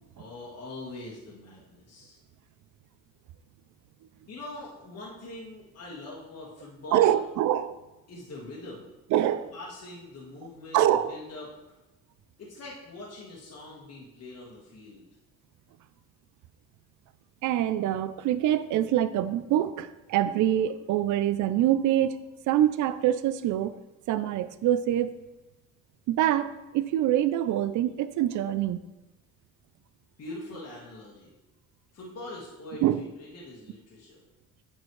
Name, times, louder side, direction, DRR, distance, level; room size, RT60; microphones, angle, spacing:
voice 1, 0.1-2.2 4.3-7.2 8.1-8.9 9.5-11.5 12.4-15.1 30.2-31.3 31.9-34.2, left 2 dB, 55° left, -5 dB, 1.7 m, -43 dB
voice 2, 6.9-7.7 9.1-9.5 10.7-11.2 17.4-23.7 24.1-25.1 26.1-28.8 32.8-33.1, right 12 dB, 80° right, 14 dB, 0.5 m, -25 dB
9.2 x 4.5 x 3.2 m, 1.1 s
cardioid pair, 90°, 30 cm